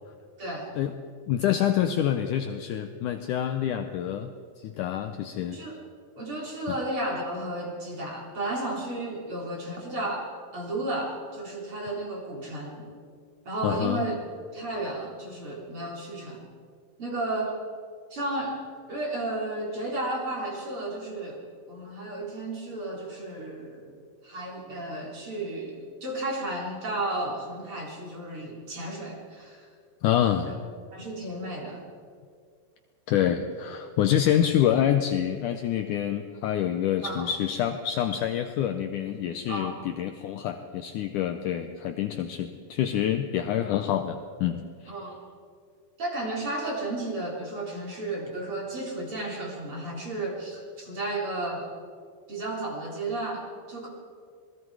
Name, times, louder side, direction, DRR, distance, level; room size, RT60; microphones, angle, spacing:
voice 1, 0.4-0.7 5.4-5.8 6.2-12.9 13.4-14.1 14.5-16.4 17.0-17.5 18.1-18.6 18.9-21.4 21.7-23.9 24.2-29.7 30.5-30.6 30.9-31.8 37.0-37.3 39.5-39.8 44.9-45.2 46.0-51.7 52.3-53.9, right 2 dB, 35° right, -2 dB, 4.1 m, -33 dB
voice 2, 1.3-4.3 4.6-5.6 6.7-6.8 13.6-14.0 30.0-30.6 33.1-45.0, left 10 dB, 75° left, 7 dB, 1.9 m, -27 dB
27.0 x 20.5 x 4.8 m, 2.2 s
omnidirectional pair, 4.3 m